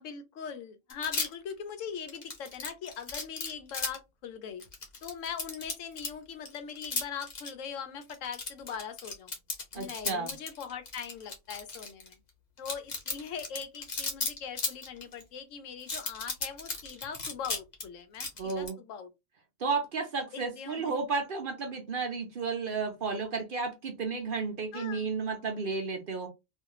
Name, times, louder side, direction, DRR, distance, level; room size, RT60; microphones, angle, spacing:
voice 1, 0.0-4.6 5.0-9.3 9.7-12.2 12.6-19.1 20.3-20.9 24.7-25.0, left 7 dB, 80° left, 1.0 m, -41 dB
sound 1, 0.9-1.5 2.1-4.0 4.6-6.1 6.5-7.5 8.0-12.1 12.6-15.2 15.8-17.8 18.1-18.7, left 3 dB, 40° left, 0.8 m, -35 dB
voice 2, 9.7-10.3 18.4-18.8 19.6-26.3, right 4 dB, 55° right, 0.7 m, -32 dB
2.5 x 2.3 x 2.9 m
omnidirectional pair, 1.3 m